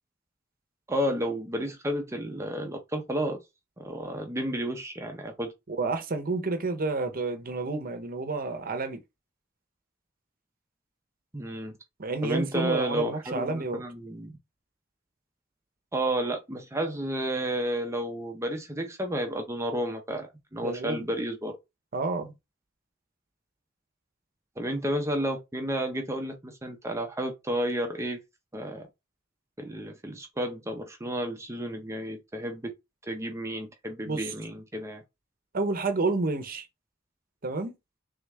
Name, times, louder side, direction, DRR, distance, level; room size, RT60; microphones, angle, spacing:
voice 1, 0.9-3.4 3.8-5.5 11.3-11.7 12.2-14.3 15.9-21.6 24.6-28.2 28.5-28.9 29.6-32.7 33.0-35.0, right 1 dB, 15° right, 0.7 m, -31 dB
voice 2, 5.7-9.0 12.0-13.8 20.6-21.1 21.9-22.4 34.1-34.3 35.5-36.7 37.4-37.7, right 3 dB, 45° right, 0.8 m, -30 dB
3.5 x 3.4 x 3.5 m
head